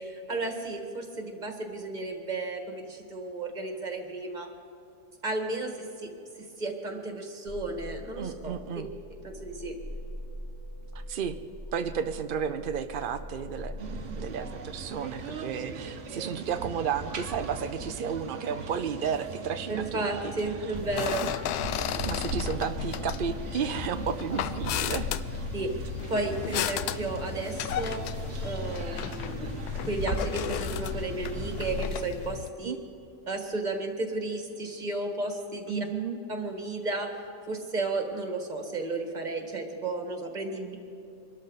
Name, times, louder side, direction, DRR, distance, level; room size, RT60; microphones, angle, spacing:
voice 1, 0.0-4.5 5.2-8.6 9.2-9.7 19.7-21.3 25.5-28.0 28.4-29.6 29.8-32.7 33.3-35.9 36.3-37.1 37.5-40.8, right 2 dB, 30° right, 3 dB, 1.8 m, -33 dB
sound 1, 7.5-14.5, equal, 15° left, 3.4 m, -42 dB
voice 2, 8.2-8.9 10.9-11.4 11.7-20.3 22.0-25.1 32.6-32.8 35.7-36.2, right 7 dB, 75° right, 9 dB, 0.4 m, -32 dB
sound 2, 13.8-31.8, right 4 dB, 50° right, 1.2 m, -39 dB
sound 3, 20.8-32.5, left 10 dB, 80° left, 1.1 m, -34 dB
25.0 x 13.0 x 4.1 m, 2.8 s
omnidirectional pair, 1.7 m